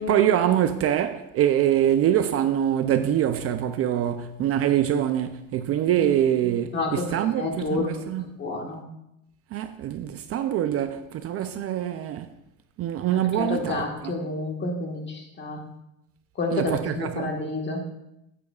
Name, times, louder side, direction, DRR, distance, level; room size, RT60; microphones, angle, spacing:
voice 1, 0.0-8.3 9.5-12.3 12.8-13.8 16.5-17.3, right 11 dB, 45° right, 0.4 m, -24 dB
voice 2, 6.7-7.9 8.2-8.8 13.1-15.6 16.3-17.8, left 2 dB, 30° left, 1.5 m, -29 dB
13.0 x 8.7 x 2.3 m
cardioid pair, 155°, 34 cm